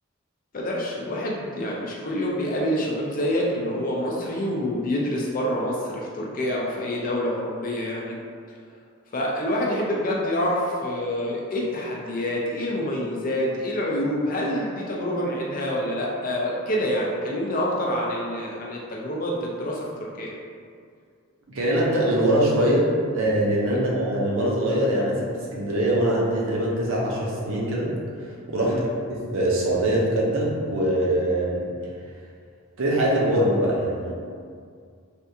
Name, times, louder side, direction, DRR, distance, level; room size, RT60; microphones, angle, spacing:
voice 1, 0.5-8.2 9.1-20.3 23.7-23.8 28.6-28.9, equal, 40° left, -3 dB, 0.4 m, -27 dB
voice 2, 21.5-27.9 28.5-28.8 29.1-31.7 32.8-34.1, right 1 dB, 70° right, -4 dB, 0.6 m, -23 dB
3.3 x 2.3 x 2.7 m, 2.2 s
head